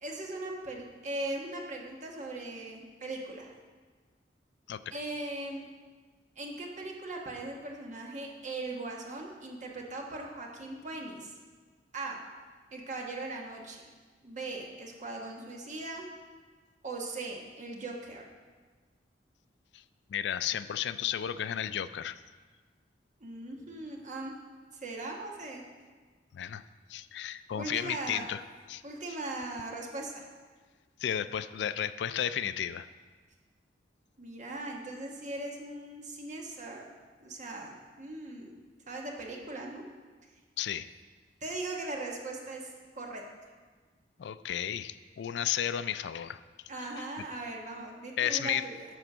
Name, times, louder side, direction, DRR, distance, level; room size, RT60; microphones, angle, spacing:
voice 1, 0.0-3.5 4.9-5.7 6.4-11.3 11.9-12.2 12.7-13.8 14.2-16.0 16.8-18.2 23.2-24.3 24.7-25.6 27.5-28.3 28.8-30.2 34.2-38.6 38.9-39.8 41.4-43.2 46.7-48.8, right 2 dB, 45° right, 0 dB, 1.3 m, -39 dB
voice 2, 20.1-22.2 26.3-26.6 26.9-28.4 28.7-28.8 31.0-32.9 40.6-40.8 44.2-46.4 46.9-47.0 48.2-48.6, left 10 dB, 70° left, 13 dB, 0.3 m, -33 dB
11.0 x 4.4 x 6.0 m, 1.4 s
head